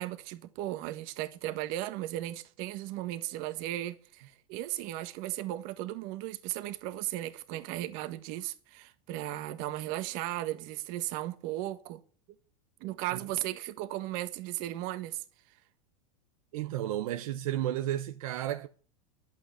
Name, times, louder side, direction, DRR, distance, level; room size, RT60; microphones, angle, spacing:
voice 1, 0.0-12.0 12.8-15.2, right 15 dB, 50° right, 1.6 m, -36 dB
voice 2, 16.5-18.7, right 12 dB, 70° right, 1.0 m, -32 dB
11.5 x 8.3 x 8.2 m
supercardioid pair, 140°, 19 cm